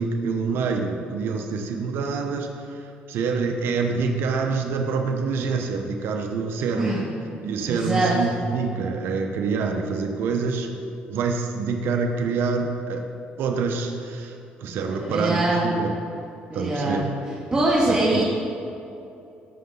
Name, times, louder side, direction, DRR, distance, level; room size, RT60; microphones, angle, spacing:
voice 1, 0.0-7.0 7.4-10.7 11.1-13.0 13.4-15.9 16.5-17.0 17.9-18.2, right 4 dB, 75° right, 3 dB, 1.1 m, -26 dB
voice 2, 7.6-8.1 15.1-15.6 16.5-17.0 17.5-18.2, right 2 dB, 25° right, -6 dB, 2.5 m, -22 dB
17.5 x 6.8 x 4.0 m, 2.7 s
cardioid pair, 85°, 4 cm